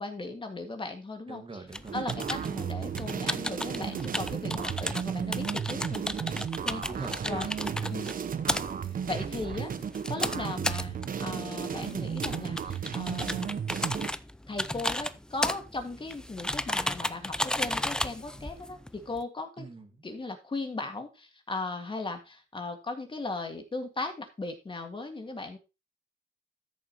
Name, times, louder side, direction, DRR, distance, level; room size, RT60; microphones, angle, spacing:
voice 1, 0.0-1.4 1.9-6.0 6.6-6.9 7.2-7.5 7.9-8.1 9.1-9.7 10.1-13.5 14.5-19.7 20.0-25.6, left 3 dB, 25° left, 5 dB, 1.9 m, -37 dB
voice 2, 1.3-2.6 6.9-8.1 19.6-20.0, right 3 dB, 25° right, 6 dB, 1.7 m, -43 dB
sound 1, 1.7-19.2, left 1 dB, 5° left, 0.5 m, -35 dB
sound 2, 1.9-14.1, right 7 dB, 45° right, 0.9 m, -34 dB
13.5 x 7.0 x 3.0 m, 0.27 s
cardioid pair, 90°, 20 cm